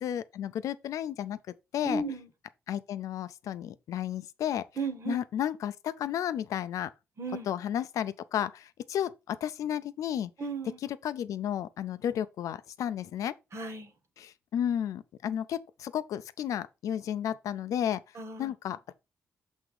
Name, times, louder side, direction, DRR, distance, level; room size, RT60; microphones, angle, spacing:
voice 1, 0.0-1.4 1.7-2.0 2.7-4.7 5.1-6.9 7.5-10.3 10.8-13.3 14.2-18.0 18.4-18.9, left 10 dB, 80° left, 0.5 m, -32 dB
voice 2, 1.8-2.3 4.8-5.2 7.2-7.5 10.4-10.8 13.5-13.9 18.1-18.8, right 3 dB, 55° right, 1.5 m, -35 dB
6.3 x 3.6 x 4.9 m
cardioid pair, 60°, 6 cm